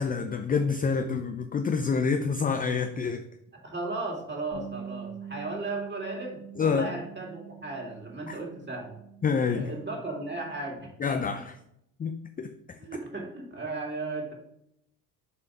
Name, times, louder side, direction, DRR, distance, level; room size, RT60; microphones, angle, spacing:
voice 1, 0.0-3.2 6.6-6.9 8.3-8.4 9.2-9.7 11.0-11.6 12.0-12.8, left 5 dB, 20° left, 7 dB, 0.4 m, -27 dB
voice 2, 3.6-8.9 9.5-10.9 12.8-14.3, right 3 dB, 20° right, 0 dB, 2.3 m, -35 dB
Bass guitar, 4.5-10.8, right 7 dB, 55° left, 2.1 m, -45 dB
6.9 x 3.5 x 4.8 m, 0.76 s
supercardioid pair, 75°, 48 cm